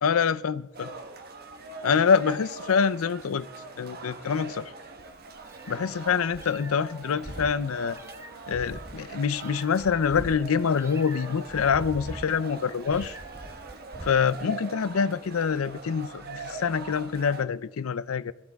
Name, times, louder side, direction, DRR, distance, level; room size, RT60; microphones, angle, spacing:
voice 1, 0.0-0.9 1.8-3.5 3.8-4.7 5.7-8.0 8.5-13.2 14.0-18.3, left 6 dB, 85° left, 0.5 m, -26 dB
sound 1, 0.7-17.4, right 3 dB, 45° right, 1.1 m, -42 dB
Meow, 5.0-14.4, right 1 dB, 15° right, 0.5 m, -43 dB
21.0 x 14.0 x 3.5 m
head